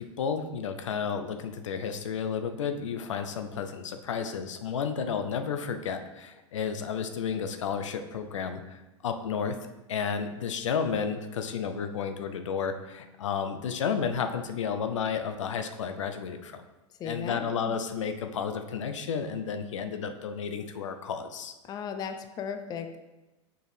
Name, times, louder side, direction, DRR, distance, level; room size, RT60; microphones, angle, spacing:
voice 1, 0.0-9.6 9.9-16.6 17.0-21.5, left 6 dB, 70° left, 7 dB, 0.5 m, -32 dB
voice 2, 17.0-17.8 21.7-23.0, left 6 dB, 25° left, 8 dB, 0.4 m, -36 dB
6.2 x 4.8 x 3.3 m, 1.1 s
hypercardioid pair, 95°, 16 cm